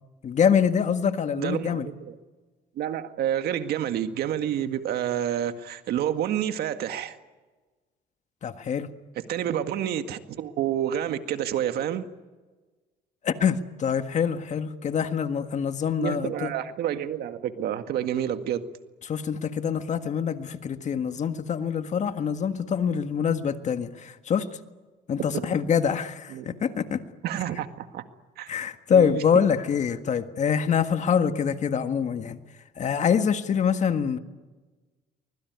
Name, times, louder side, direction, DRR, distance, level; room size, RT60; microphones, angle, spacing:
voice 1, 0.2-1.9 8.4-8.9 13.2-16.5 19.0-24.5 25.1-27.0 28.5-32.4 32.8-34.2, left 7 dB, 45° left, 1.7 m, -25 dB
voice 2, 1.4-2.1 2.8-7.2 9.3-12.1 16.0-18.7 25.3-25.5 26.3-26.5 27.2-28.0 28.4-28.5 28.9-29.2, right 10 dB, 70° right, 1.9 m, -29 dB
24.5 x 21.5 x 9.5 m
cardioid pair, 110°, 17 cm